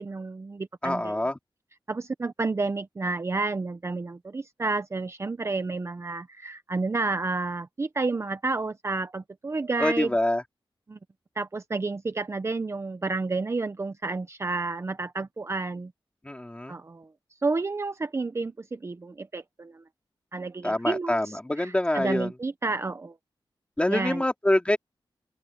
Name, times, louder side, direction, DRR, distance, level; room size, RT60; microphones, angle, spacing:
voice 1, 0.0-1.2 1.9-10.1 10.9-11.0 11.4-15.9 16.7-17.1 17.4-19.8 20.3-23.1 23.9-24.2, right 3 dB, 30° right, 0.7 m, -30 dB
voice 2, 0.8-1.4 9.8-10.4 16.2-16.8 20.6-22.3 23.8-24.8, left 1 dB, 15° left, 2.8 m, -25 dB
open air
wide cardioid pair, 145°, 9 cm